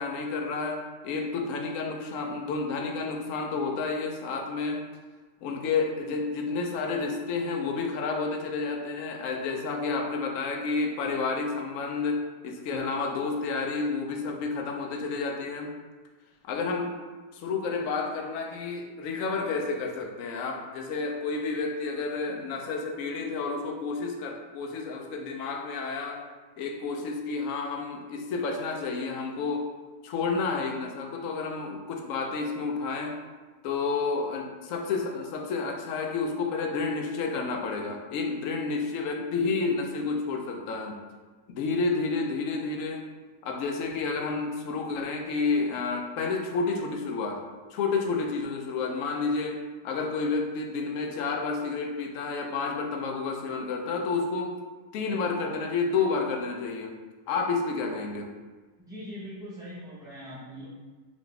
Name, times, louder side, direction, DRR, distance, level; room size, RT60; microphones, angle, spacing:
voice 1, 0.0-4.8 5.4-15.7 16.4-17.0 17.3-26.3 26.6-29.7 30.0-33.2 33.6-41.0 41.5-43.1 43.4-47.4 47.7-54.6 54.9-57.0 57.3-58.4, left 4 dB, 70° left, 3 dB, 0.8 m, -30 dB
voice 2, 58.9-60.7, equal, 5° right, -10 dB, 0.3 m, -41 dB
3.9 x 3.0 x 3.3 m, 1.3 s
omnidirectional pair, 1.7 m